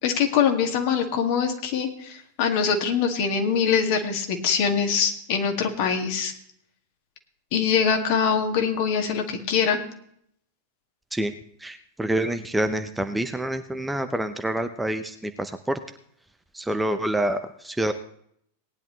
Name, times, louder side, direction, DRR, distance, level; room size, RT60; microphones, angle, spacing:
voice 1, 0.0-6.3 7.5-9.8, left 7 dB, 45° left, 4 dB, 2.2 m, -23 dB
voice 2, 11.6-15.8 16.5-17.9, right 1 dB, 5° right, 8 dB, 0.8 m, -27 dB
18.5 x 10.5 x 3.3 m, 0.67 s
figure-of-eight pair, 90°, 0 cm